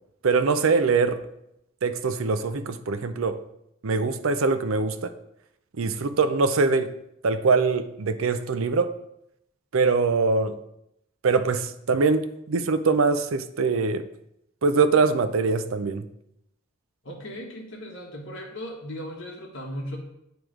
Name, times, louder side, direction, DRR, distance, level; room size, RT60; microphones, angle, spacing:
voice 1, 0.2-1.2 1.8-3.4 3.8-5.1 5.8-6.9 7.2-8.9 9.7-10.6 11.2-14.0 14.6-16.0, right 4 dB, 85° right, 11 dB, 0.5 m, -23 dB
voice 2, 17.0-20.0, equal, 65° left, -1 dB, 1.2 m, -37 dB
9.1 x 3.1 x 4.9 m, 0.80 s
head